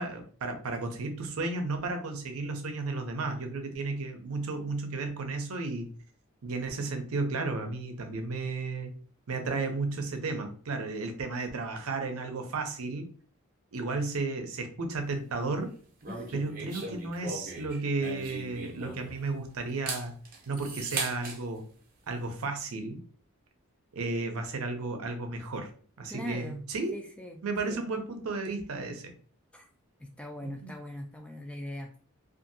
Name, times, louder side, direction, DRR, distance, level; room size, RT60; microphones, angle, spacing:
voice 1, 0.0-5.9 6.4-8.9 9.3-13.1 13.7-15.7 16.3-20.1 20.5-21.6 22.1-23.0 23.9-25.7 26.0-27.0 27.4-29.1 30.4-30.7, right 3 dB, 80° right, 5 dB, 0.6 m, -33 dB
sound 1, 16.0-19.3 19.7-21.4, right 3 dB, 40° right, 0.6 m, -38 dB
voice 2, 16.1-16.4 26.1-26.7 26.9-27.8 29.5-29.7 30.0-32.0, left 1 dB, 5° left, 3 dB, 0.3 m, -41 dB
2.7 x 2.5 x 2.6 m, 0.44 s
head